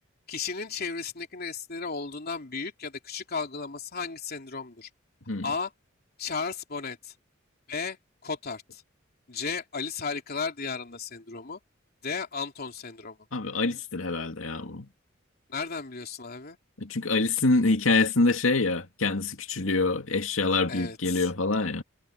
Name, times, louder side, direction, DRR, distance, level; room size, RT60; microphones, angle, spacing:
voice 1, 0.3-4.9 5.4-5.7 6.2-7.1 7.7-8.0 8.2-8.8 9.3-11.6 12.0-13.2 15.5-16.6 20.7-21.3, left 5 dB, 50° left, 3.2 m, -34 dB
voice 2, 13.3-14.9 16.8-21.8, left 3 dB, 85° left, 2.4 m, -25 dB
head